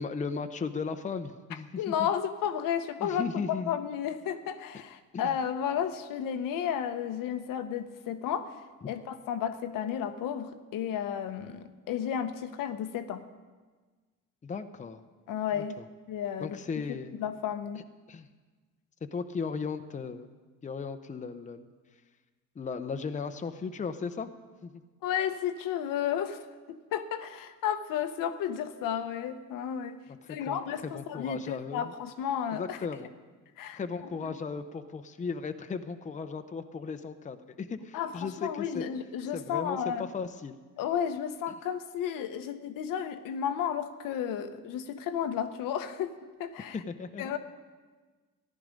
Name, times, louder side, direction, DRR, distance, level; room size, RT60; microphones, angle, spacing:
voice 1, 0.0-2.1 3.0-3.8 5.1-5.4 8.8-8.9 14.4-15.0 15.5-15.8 16.4-17.1 18.1-18.3 19.1-20.3 20.6-21.7 22.6-24.3 24.6-24.7 30.2-31.9 32.5-33.1 33.7-38.9 39.3-40.6 46.7-47.3, left 5 dB, 20° left, 8 dB, 0.7 m, -36 dB
voice 2, 1.8-13.2 15.3-15.8 16.1-16.6 16.9-17.9 25.0-30.0 30.3-32.8 33.6-34.4 37.9-40.1 40.8-46.8 47.2-47.4, left 9 dB, 70° left, 9 dB, 0.9 m, -33 dB
14.5 x 10.0 x 5.1 m, 1.4 s
supercardioid pair, 90°, 34 cm